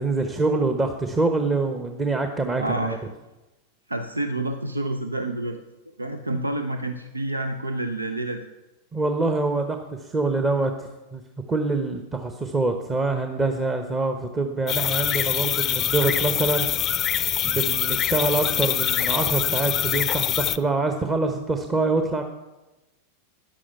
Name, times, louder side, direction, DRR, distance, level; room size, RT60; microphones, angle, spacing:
voice 1, 0.0-3.0 6.3-6.4 8.9-11.2 11.5-17.1 17.4-22.2, right 3 dB, 15° right, 6 dB, 1.1 m, -25 dB
voice 2, 2.6-3.0 3.9-5.6 6.0-8.5, right 1 dB, 80° right, 8 dB, 0.7 m, -28 dB
sound 1, 14.7-20.6, left 11 dB, 30° left, 0.6 m, -24 dB
14.0 x 10.0 x 5.7 m, 1.0 s
figure-of-eight pair, 90°, 0 cm